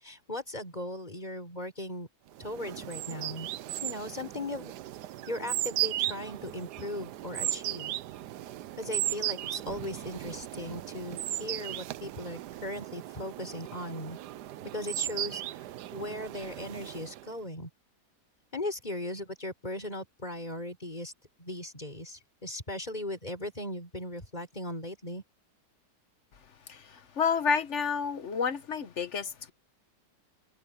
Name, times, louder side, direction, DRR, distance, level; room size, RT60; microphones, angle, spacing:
voice 1, 0.0-2.1 2.4-3.5 3.8-4.7 5.3-7.9 8.8-14.2 14.7-15.4 15.9-17.7 18.5-21.1 21.4-25.2, left 1 dB, 20° left, 5.7 m, -38 dB
sound 1, 2.4-17.3, right 14 dB, 70° right, 1.2 m, -36 dB
voice 2, 26.7-29.5, left 6 dB, 45° left, 1.3 m, -30 dB
omnidirectional pair, 1.9 m